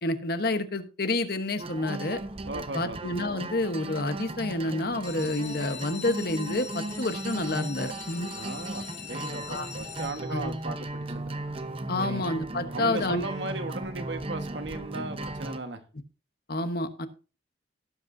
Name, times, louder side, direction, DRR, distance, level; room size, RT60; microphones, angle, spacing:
voice 1, 0.0-2.2 2.7-8.3 9.5-9.7 10.3-10.5 11.9-13.2 16.5-17.1, left 2 dB, 55° left, 1.2 m, -29 dB
sound 1, 1.6-15.6, right 2 dB, 30° right, 0.8 m, -37 dB
voice 2, 2.4-3.0 8.3-11.3 12.0-12.2 12.7-15.8, right 2 dB, 70° right, 1.5 m, -37 dB
sound 2, 4.9-10.6 11.3-11.7 12.1-12.2 12.5-12.6 13.0-13.1, left 8 dB, 75° left, 3.1 m, -43 dB
17.5 x 7.9 x 2.7 m
head